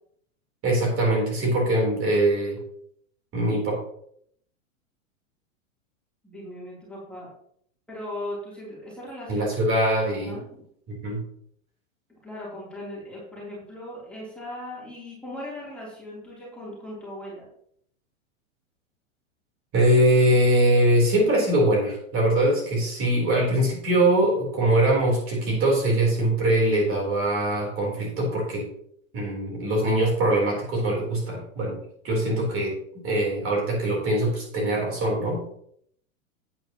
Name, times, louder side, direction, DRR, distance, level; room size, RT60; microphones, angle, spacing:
voice 1, 0.6-2.6 3.3-3.8 9.3-10.4 10.9-11.2 19.7-28.7 29.1-31.8 32.0-32.8 33.0-35.4, right 1 dB, 30° right, -2 dB, 4.1 m, -22 dB
voice 2, 6.2-7.3 7.9-9.5 10.1-10.6 12.2-17.4, left 1 dB, 5° left, -7 dB, 3.6 m, -38 dB
9.3 x 9.2 x 3.1 m, 0.66 s
hypercardioid pair, 135°, 41 cm